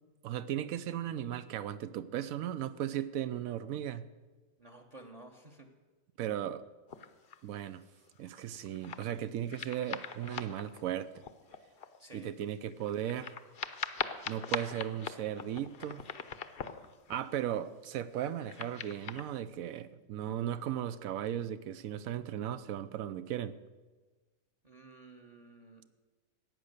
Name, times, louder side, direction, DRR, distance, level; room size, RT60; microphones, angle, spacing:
voice 1, 0.2-4.0 6.2-6.6 7.4-7.8 8.2-11.1 12.1-13.3 14.3-16.0 17.1-23.6, right 10 dB, 75° right, 14 dB, 1.0 m, -36 dB
voice 2, 4.6-5.7 12.0-12.3 24.6-25.8, right 2 dB, 30° right, 5 dB, 0.9 m, -53 dB
sound 1, 6.9-7.4 8.1-9.2 9.5-12.0 12.4-12.5 12.7-17.6 18.0-19.2, left 7 dB, 50° left, 0.8 m, -42 dB
14.0 x 9.0 x 6.6 m, 1.3 s
omnidirectional pair, 1.5 m